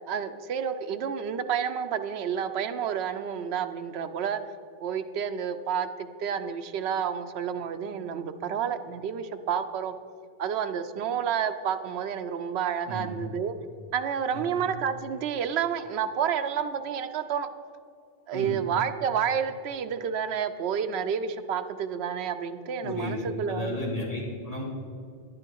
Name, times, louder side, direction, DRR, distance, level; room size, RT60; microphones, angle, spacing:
voice 1, 0.1-4.4 4.8-10.0 10.4-13.6 13.9-17.5 18.3-23.8, right 7 dB, 80° right, 9 dB, 0.8 m, -30 dB
voice 2, 14.3-14.6 18.3-18.5 22.8-24.6, left 1 dB, 35° left, -5 dB, 2.8 m, -33 dB
10.5 x 10.0 x 4.6 m, 2.4 s
omnidirectional pair, 1.1 m